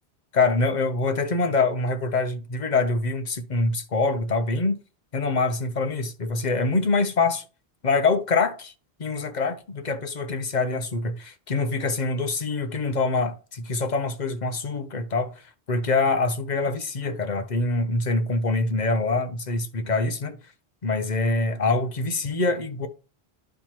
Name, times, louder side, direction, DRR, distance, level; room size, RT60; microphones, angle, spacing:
voice 1, 0.3-4.8 5.1-7.4 7.8-8.7 9.0-15.3 15.7-20.4 20.8-22.9, left 3 dB, 45° left, 0.8 m, -25 dB
11.5 x 4.4 x 3.0 m
omnidirectional pair, 1.1 m